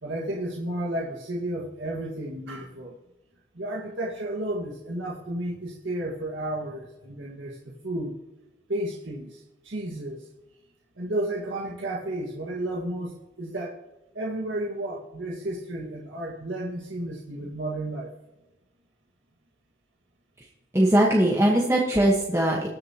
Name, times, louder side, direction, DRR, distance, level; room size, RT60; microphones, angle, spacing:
voice 1, 0.0-3.0 3.5-7.6 7.8-8.2 8.7-10.3 11.0-13.8 14.1-18.1, right 1 dB, 85° right, -4 dB, 1.8 m, -32 dB
voice 2, 20.7-22.7, right 1 dB, 15° right, -3 dB, 1.3 m, -20 dB
21.0 x 7.1 x 3.0 m, 1.0 s
head